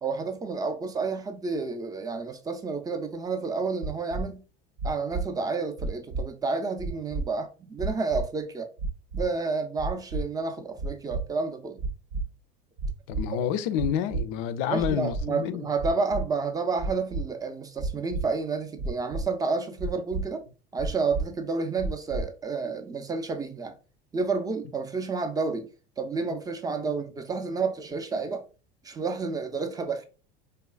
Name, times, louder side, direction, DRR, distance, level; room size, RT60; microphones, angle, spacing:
voice 1, 0.0-4.4 4.8-8.7 9.1-11.8 13.3-13.5 14.7-20.4 20.7-23.8 24.1-25.7 26.0-28.4 28.8-30.0, right 4 dB, 10° right, 0.4 m, -30 dB
sound 1, 3.8-4.2 4.8-5.2 5.8-6.2 6.8-7.2 7.8-8.2 8.8-9.2 9.8-10.2 10.8-11.2 11.8-12.2 12.8-13.2 13.8-14.2 14.8-15.2 15.8-16.2 16.8-17.2 17.8-18.2 18.8-19.2 19.8-20.2 20.8-21.2 21.8-22.2, right 3 dB, 65° right, 0.6 m, -30 dB
voice 2, 13.1-15.6, left 9 dB, 60° left, 0.4 m, -28 dB
3.2 x 2.3 x 2.2 m
hypercardioid pair, 90°, 30 cm